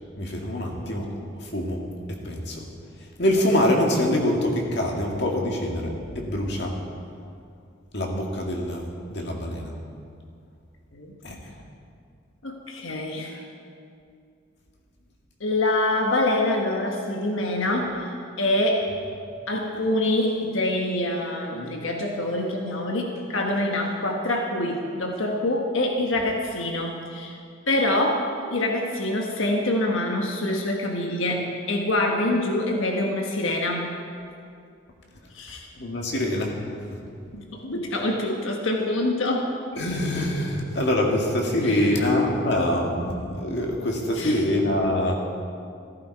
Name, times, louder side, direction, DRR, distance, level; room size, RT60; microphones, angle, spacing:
voice 1, 0.2-1.1 1.4-1.8 2.1-2.6 3.2-6.8 7.9-8.9 9.1-9.7 11.2-11.4 35.8-36.5 39.8-45.2, left 1 dB, 55° left, 0 dB, 2.1 m, -24 dB
voice 2, 12.4-13.4 15.4-18.8 19.5-27.4 27.7-28.2 28.5-34.0 35.3-35.7 37.3-39.5 41.6-42.0 44.1-44.4, left 1 dB, 75° left, 1 dB, 1.3 m, -25 dB
15.0 x 14.5 x 4.7 m, 2.4 s
head